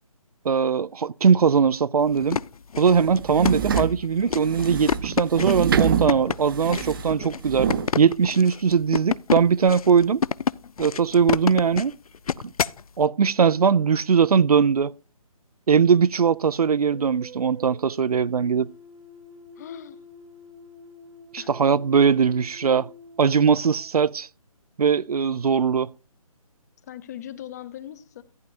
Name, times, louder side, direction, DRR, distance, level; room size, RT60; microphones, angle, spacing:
voice 1, 0.4-2.4 2.8-7.7 8.0-10.2 10.8-12.0 13.0-14.9 15.7-18.7 21.3-22.9 23.2-24.3 24.8-25.9, right 6 dB, 80° right, 0.5 m, -20 dB
sound 1, 2.1-12.8, left 6 dB, 75° left, 0.5 m, -29 dB
sound 2, 2.9-7.9, right 7 dB, 35° right, 0.7 m, -26 dB
sound 3, 16.8-24.1, left 1 dB, 60° right, 1.3 m, -47 dB
voice 2, 19.6-20.0 21.4-21.5 26.9-28.2, left 10 dB, 30° left, 0.8 m, -39 dB
14.5 x 10.0 x 2.6 m
figure-of-eight pair, 155°, 19 cm